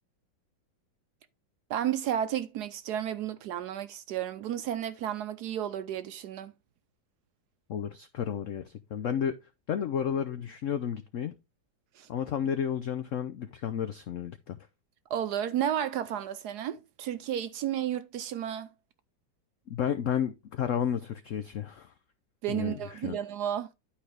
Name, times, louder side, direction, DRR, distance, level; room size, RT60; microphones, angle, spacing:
voice 1, 1.7-6.5 12.0-12.1 15.1-18.7 22.4-23.7, right 10 dB, 70° right, 1.0 m, -32 dB
voice 2, 7.7-9.4 9.7-11.3 12.1-14.6 19.7-21.9 22.5-23.2, left 8 dB, 85° left, 0.6 m, -32 dB
11.0 x 4.6 x 3.3 m
omnidirectional pair, 2.1 m